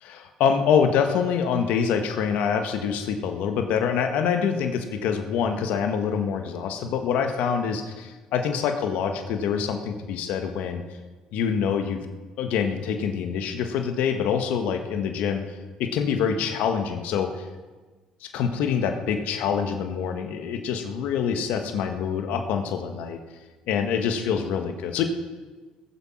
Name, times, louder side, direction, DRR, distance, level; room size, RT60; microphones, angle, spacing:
voice 1, 0.0-10.8 11.3-12.0 12.4-15.4 15.8-17.3 18.2-23.2 23.7-25.0, left 7 dB, 75° left, 6 dB, 1.6 m, -25 dB
20.5 x 7.5 x 5.9 m, 1.3 s
supercardioid pair, 80°, 3 cm